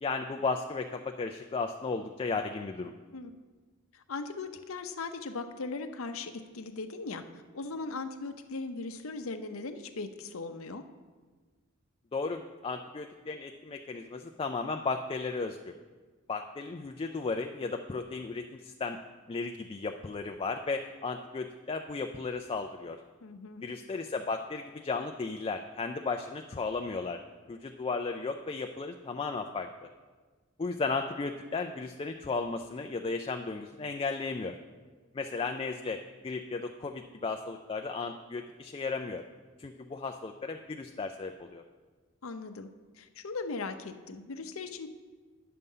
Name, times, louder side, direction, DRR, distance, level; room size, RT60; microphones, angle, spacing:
voice 1, 0.0-2.9 12.1-15.7 16.3-19.0 19.3-23.0 23.6-27.2 27.5-29.9 30.6-34.6 35.1-39.2 39.6-41.6, left 4 dB, 25° left, 4 dB, 0.4 m, -35 dB
voice 2, 3.9-7.2 7.5-10.8 23.2-23.6 42.2-42.7 42.9-44.9, left 3 dB, 70° left, 8 dB, 0.7 m, -39 dB
9.4 x 6.7 x 5.5 m, 1.4 s
head